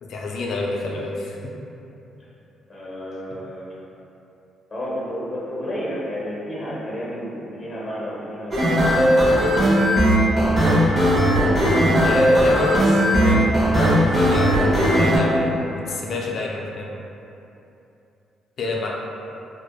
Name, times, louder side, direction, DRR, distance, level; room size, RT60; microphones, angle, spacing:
voice 1, 0.0-1.4 10.9-11.1 12.0-16.9 18.6-18.9, left 2 dB, 65° left, -2 dB, 0.3 m, -28 dB
voice 2, 2.7-3.8 4.7-8.8, equal, 30° left, -6 dB, 0.7 m, -31 dB
sound 1, 8.5-15.2, equal, 35° right, 0.6 m, -17 dB
2.7 x 2.0 x 2.2 m, 2.9 s
cardioid pair, 90°, 0 cm